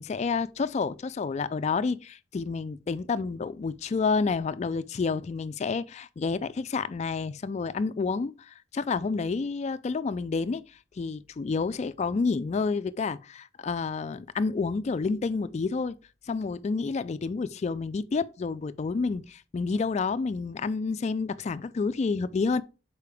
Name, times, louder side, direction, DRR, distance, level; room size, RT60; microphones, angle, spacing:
voice 1, 0.0-10.6 11.0-15.9 16.3-22.6, left 4 dB, 35° left, 0.3 m, -29 dB
6.6 x 4.5 x 3.4 m
head